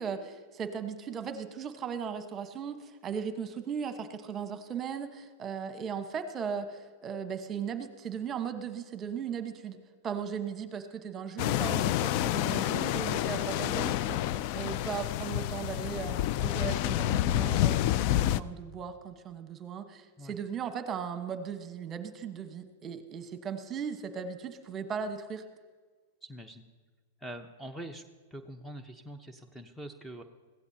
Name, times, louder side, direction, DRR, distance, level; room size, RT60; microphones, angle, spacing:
voice 1, 0.0-9.8 10.0-25.4, right 7 dB, 25° right, 8 dB, 1.2 m, -37 dB
sound 1, 11.4-18.4, left 13 dB, 50° left, 0.4 m, -29 dB
voice 2, 26.2-26.6 27.2-28.0 28.3-30.2, right 1 dB, 5° left, 6 dB, 0.9 m, -44 dB
21.5 x 16.0 x 2.8 m, 1.4 s
hypercardioid pair, 110°, 0 cm